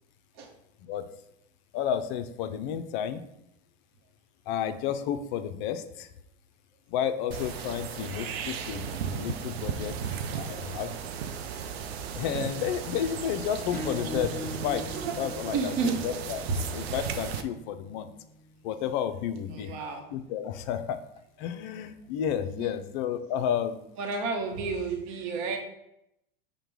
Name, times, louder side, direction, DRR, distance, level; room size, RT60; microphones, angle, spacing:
voice 1, 1.7-3.3 4.5-6.1 6.9-10.0 10.3-10.9 12.1-16.4 16.7-18.1 18.6-19.7 20.1-21.0 21.4-23.8 25.4-25.5, left 9 dB, 50° left, 10 dB, 0.5 m, -31 dB
sound 1, 7.3-17.4, right 7 dB, 85° right, 0.5 m, -35 dB
Acoustic guitar / Strum, 13.7-18.9, equal, 5° left, 0.7 m, -42 dB
voice 2, 15.5-16.0 16.5-16.6 19.5-20.0 22.4-22.7 24.0-25.6, right 4 dB, 45° right, 2 dB, 0.9 m, -31 dB
5.1 x 2.2 x 4.6 m, 0.80 s
hypercardioid pair, 105°, 30 cm